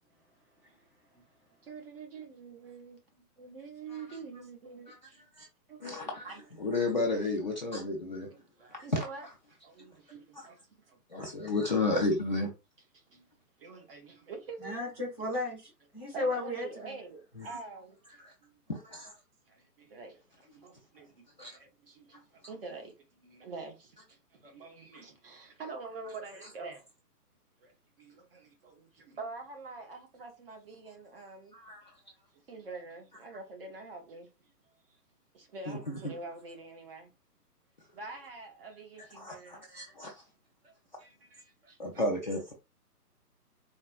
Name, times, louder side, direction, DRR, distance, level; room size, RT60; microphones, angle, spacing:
voice 1, 1.6-6.7 7.1-7.2 8.6-10.6 10.9-11.2 12.9-13.3 13.6-14.9 16.1-18.6 19.5-26.9 27.6-31.6 31.8-31.9 32.3-34.5 34.9-35.0 35.3-37.1 37.9-39.7 40.6-40.7 41.0-42.0, right 4 dB, 35° right, 0.8 m, -46 dB
voice 2, 5.8-6.3 6.6-8.3 9.8-9.9 11.1-12.5 17.4-17.6 18.2-18.3 18.7-19.2 21.4-21.5 31.5-31.9 35.7-35.8 36.0-36.1 39.1-40.1 41.8-42.5, left 2 dB, 35° left, 0.4 m, -32 dB
voice 3, 14.6-16.9, left 2 dB, 10° right, 1.1 m, -34 dB
4.2 x 2.1 x 2.4 m
hypercardioid pair, 145°, 47 cm